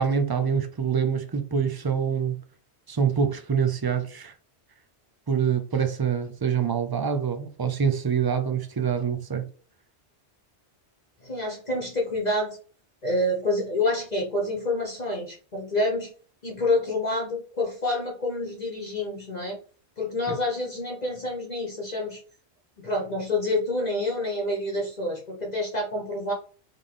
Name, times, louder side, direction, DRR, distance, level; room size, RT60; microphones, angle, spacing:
voice 1, 0.0-2.4 2.9-4.3 5.3-9.5 20.3-20.4, right 7 dB, 30° right, 0.4 m, -25 dB
voice 2, 11.2-12.6 13.0-16.1 16.4-19.6 20.0-22.2 22.8-26.3, left 1 dB, 40° left, 1.1 m, -28 dB
3.8 x 3.7 x 3.3 m
omnidirectional pair, 1.1 m